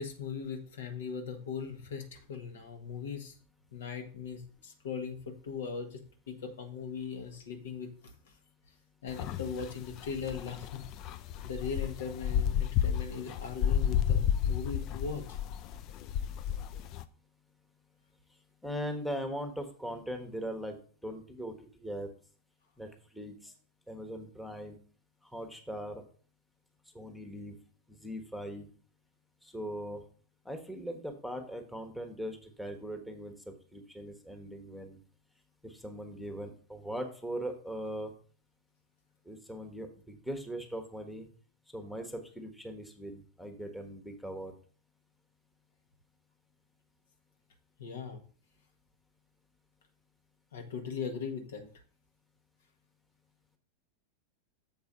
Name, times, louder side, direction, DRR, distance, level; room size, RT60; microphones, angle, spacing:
voice 1, 0.0-3.3 3.7-7.9 9.0-10.9 11.4-15.4 47.8-48.2 50.5-51.7, left 5 dB, 60° left, 5 dB, 1.2 m, -39 dB
sound 1, 9.2-17.0, left 9 dB, 40° left, 0.5 m, -31 dB
voice 2, 18.6-22.1 22.8-23.5 23.9-24.8 25.2-26.0 26.9-27.6 27.9-28.7 29.4-30.0 30.4-35.0 35.6-38.1 39.2-41.3 41.7-44.5, equal, ahead, 5 dB, 1.2 m, -40 dB
7.2 x 4.7 x 5.4 m, 0.42 s
figure-of-eight pair, 90°, 0 cm